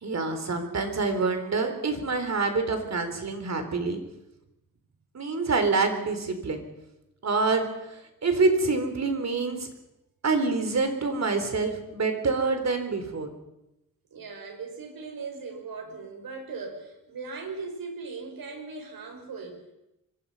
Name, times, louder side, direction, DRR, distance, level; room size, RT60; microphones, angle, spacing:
voice 1, 0.0-4.0 5.1-6.6 7.2-9.7 10.2-13.3, right 3 dB, 50° right, 7 dB, 4.1 m, -26 dB
voice 2, 14.1-19.7, right 4 dB, 85° right, 3 dB, 6.1 m, -39 dB
25.5 x 24.5 x 5.7 m, 0.89 s
wide cardioid pair, 130°, 34 cm